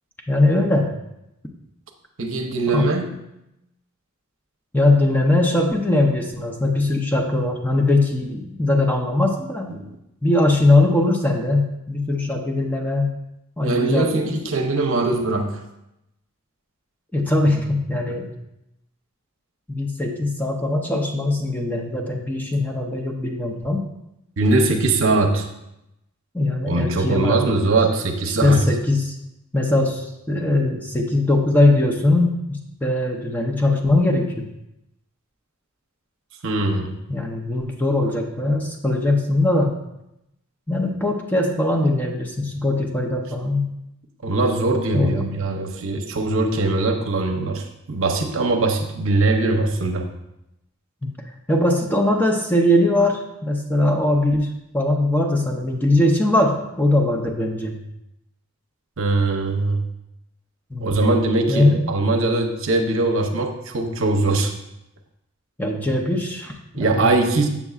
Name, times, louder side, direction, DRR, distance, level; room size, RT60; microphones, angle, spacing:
voice 1, 0.3-0.9 2.7-2.9 4.7-9.8 10.2-13.1 13.6-14.1 17.1-18.3 19.7-23.8 26.3-27.4 28.4-29.1 29.5-34.5 37.1-39.7 40.7-43.7 44.9-45.3 51.0-51.1 51.5-57.8 60.7-60.9 61.5-61.9 65.6-67.2, left 2 dB, 10° left, 1 dB, 0.6 m, -20 dB
voice 2, 2.2-3.1 9.7-9.9 13.6-15.6 24.4-25.5 26.7-28.7 36.4-36.9 44.2-50.1 59.0-59.8 60.8-64.5 66.7-67.5, right 2 dB, 65° right, 4 dB, 0.7 m, -21 dB
7.1 x 6.7 x 2.4 m, 0.86 s
head